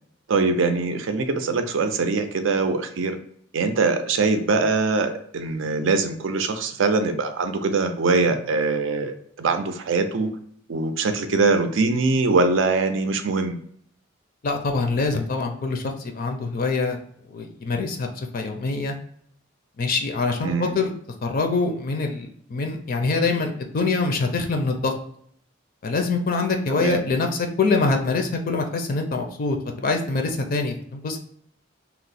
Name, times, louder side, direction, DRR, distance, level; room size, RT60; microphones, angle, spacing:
voice 1, 0.3-3.2 3.5-10.3 10.7-13.6 20.4-20.8 26.7-27.0, right 3 dB, 80° right, 8 dB, 0.5 m, -22 dB
voice 2, 14.4-17.0 17.3-19.0 19.8-20.9 21.2-24.9 25.8-31.2, left 3 dB, 50° left, 4 dB, 0.4 m, -24 dB
2.9 x 2.0 x 4.0 m, 0.64 s
head